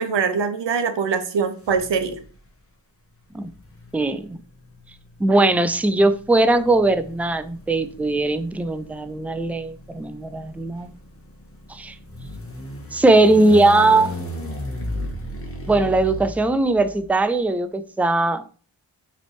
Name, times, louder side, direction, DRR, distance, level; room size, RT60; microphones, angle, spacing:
voice 1, 0.0-2.2, right 5 dB, 70° right, 0.7 m, -23 dB
sound 1, 1.6-2.3 3.4-17.1, left 1 dB, 30° left, 0.9 m, -35 dB
voice 2, 3.9-4.4 5.2-10.9 11.7-11.9 12.9-14.1 15.7-18.5, right 2 dB, 5° right, 0.3 m, -19 dB
4.0 x 3.3 x 3.1 m
cardioid pair, 50°, 46 cm